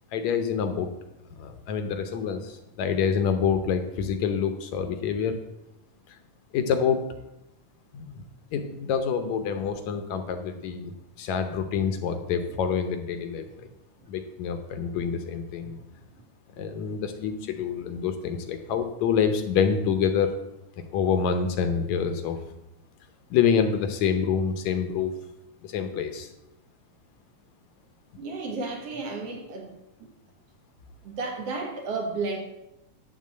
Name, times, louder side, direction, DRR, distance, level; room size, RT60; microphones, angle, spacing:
voice 1, 0.1-0.9 1.4-5.4 6.5-7.1 7.9-8.2 8.5-13.4 14.1-15.8 16.6-20.3 20.9-22.4 23.3-25.1 25.6-26.3, left 7 dB, 70° left, 8 dB, 2.0 m, -27 dB
voice 2, 28.2-29.8 31.0-32.4, right 3 dB, 60° right, 2 dB, 2.3 m, -32 dB
12.0 x 4.2 x 7.6 m, 0.89 s
omnidirectional pair, 3.5 m